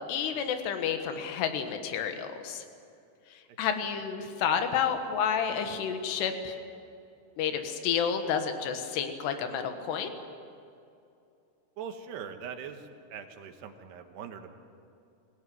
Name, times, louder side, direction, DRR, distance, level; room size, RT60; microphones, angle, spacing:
voice 1, 0.1-2.6 3.6-6.6 7.4-10.1, left 7 dB, 85° left, 6 dB, 3.5 m, -30 dB
voice 2, 11.8-14.5, right 7 dB, 85° right, 6 dB, 3.6 m, -42 dB
24.5 x 17.0 x 9.5 m, 2.6 s
omnidirectional pair, 4.7 m